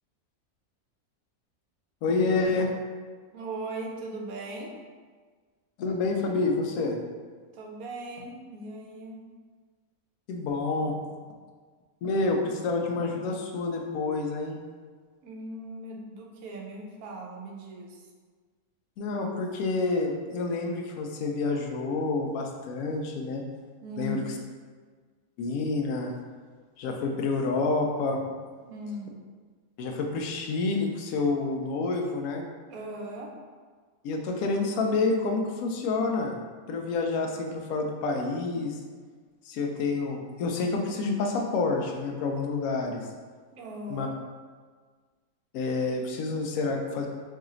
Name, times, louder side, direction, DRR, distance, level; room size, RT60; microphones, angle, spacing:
voice 1, 2.0-2.7 5.8-7.0 10.3-10.9 12.0-14.6 19.0-23.4 24.0-24.2 25.4-26.1 26.8-28.2 29.8-32.4 34.0-36.4 36.7-38.8 39.5-43.0 43.9-44.1 45.5-47.1, left 3 dB, 75° left, 2 dB, 1.0 m, -28 dB
voice 2, 3.3-4.7 7.5-9.3 15.2-18.0 23.8-24.3 28.6-29.1 32.7-33.3 43.5-44.1, right 1 dB, 70° right, 0 dB, 1.1 m, -38 dB
3.2 x 2.9 x 3.7 m, 1.5 s
omnidirectional pair, 1.6 m